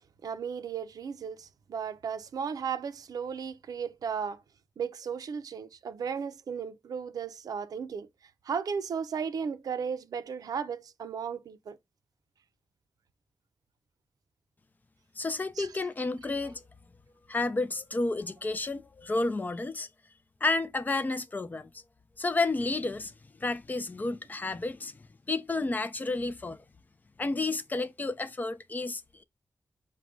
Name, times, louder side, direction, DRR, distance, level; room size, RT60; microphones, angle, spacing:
voice 1, 0.2-4.4 4.8-8.1 8.4-11.8 15.6-15.7, right 6 dB, 80° right, 0.4 m, -35 dB
voice 2, 15.2-16.6 17.3-19.9 20.4-21.8 22.2-23.1 23.4-26.6 27.2-29.2, left 3 dB, 30° left, 0.4 m, -31 dB
4.8 x 2.2 x 4.5 m
wide cardioid pair, 125°, 6 cm